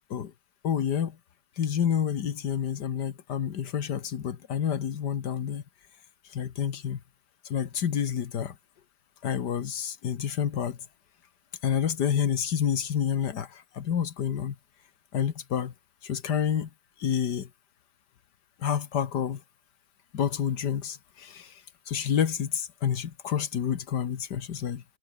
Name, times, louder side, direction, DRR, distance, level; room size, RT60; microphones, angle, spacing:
voice 1, 0.6-1.2 1.6-5.6 6.3-7.0 7.4-8.5 9.2-10.8 11.6-14.5 15.1-15.7 16.0-16.7 17.0-17.5 18.6-19.4 20.1-21.6 21.9-24.8, left 8 dB, 55° left, 1.1 m, -29 dB
omnidirectional pair, 3.6 m